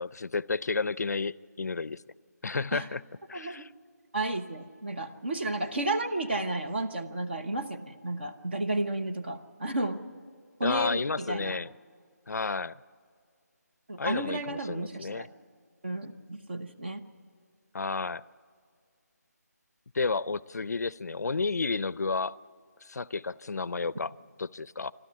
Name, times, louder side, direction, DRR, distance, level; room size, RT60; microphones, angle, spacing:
voice 1, 0.0-2.0 2.4-3.0 3.3-3.7 10.6-11.7 12.3-12.8 14.0-15.3 17.7-18.2 19.9-22.4 22.8-24.1 24.4-24.9, left 4 dB, 70° left, 0.5 m, -31 dB
voice 2, 3.3-3.7 4.1-10.0 10.6-11.6 13.9-15.3 15.8-17.0, right 2 dB, 40° right, 1.0 m, -32 dB
26.0 x 13.0 x 8.5 m
figure-of-eight pair, 180°, 9 cm